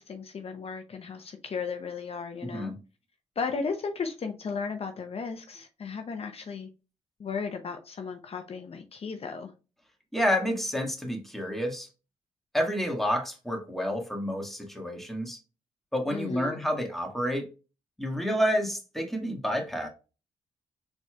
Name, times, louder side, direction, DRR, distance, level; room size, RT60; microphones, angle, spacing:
voice 1, 0.0-2.7 3.4-6.7 7.2-9.5 16.1-16.6, left 5 dB, 50° left, 0.7 m, -35 dB
voice 2, 2.4-2.8 10.1-11.9 12.5-15.4 15.9-17.5 18.0-19.9, equal, ahead, 1.7 m, -29 dB
4.5 x 4.2 x 2.3 m
cardioid pair, 65°, 13 cm